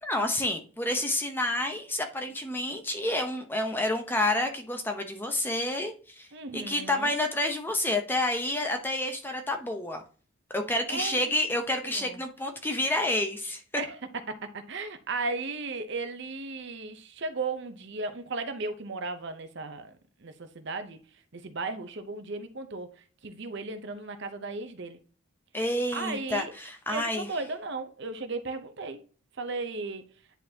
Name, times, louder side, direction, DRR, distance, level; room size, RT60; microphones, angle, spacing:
voice 1, 0.0-6.3 6.5-10.0 10.5-13.6 25.5-27.3, left 1 dB, 10° left, 0.7 m, -29 dB
voice 2, 6.3-7.1 10.9-11.4 11.8-12.2 13.7-14.0 14.3-20.0 20.2-21.0 21.3-22.9 23.2-25.0 25.9-26.5 26.9-29.0 29.4-30.0, right 3 dB, 55° right, 0.7 m, -35 dB
10.0 x 4.0 x 2.8 m
head